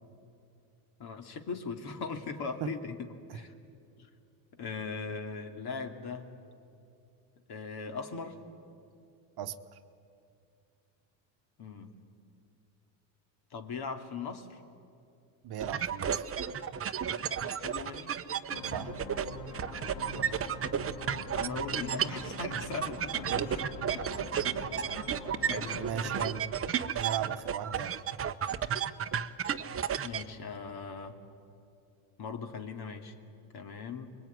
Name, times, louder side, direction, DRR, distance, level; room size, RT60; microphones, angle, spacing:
voice 1, 1.0-3.5 4.0-4.1 4.5-6.3 7.5-8.4 11.6-11.9 13.5-14.6 17.3-18.2 19.8-20.1 21.3-24.0 24.7-24.9 25.5-26.3 30.0-31.2 32.2-33.1 33.5-34.1, left 5 dB, 50° left, 6 dB, 2.6 m, -40 dB
voice 2, 9.4-9.8 15.4-16.2 18.7-18.9 23.3-23.5 25.8-26.5 26.9-28.0, right 9 dB, 50° right, 9 dB, 1.2 m, -37 dB
sound 1, 15.6-30.3, right 8 dB, 25° right, 0.9 m, -33 dB
sound 2, 18.5-26.4, left 2 dB, 90° left, 2.7 m, -44 dB
24.5 x 22.0 x 9.5 m, 2.6 s
supercardioid pair, 105°, 50 cm